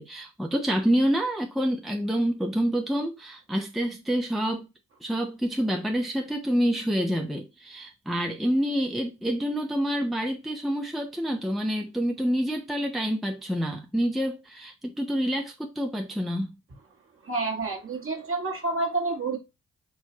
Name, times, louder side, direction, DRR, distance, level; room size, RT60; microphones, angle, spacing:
voice 1, 0.0-4.7 5.0-16.5, equal, ahead, 0.7 m, -27 dB
voice 2, 17.2-19.4, right 3 dB, 40° right, 1.5 m, -29 dB
4.7 x 3.1 x 2.8 m
supercardioid pair, 60°, 34 cm